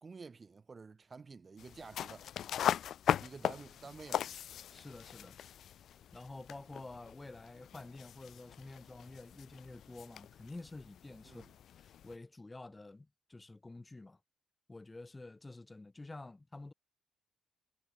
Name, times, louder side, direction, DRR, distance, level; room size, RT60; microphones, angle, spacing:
voice 1, 0.0-2.3 3.2-4.3 11.2-11.5, right 4 dB, 35° right, 1.1 m, -50 dB
sound 1, 1.6-12.2, left 10 dB, 65° left, 0.3 m, -39 dB
voice 2, 4.7-5.4 6.1-11.5 11.8-14.2 14.7-16.7, left 2 dB, 20° left, 1.8 m, -49 dB
cardioid pair, 90°, 0 cm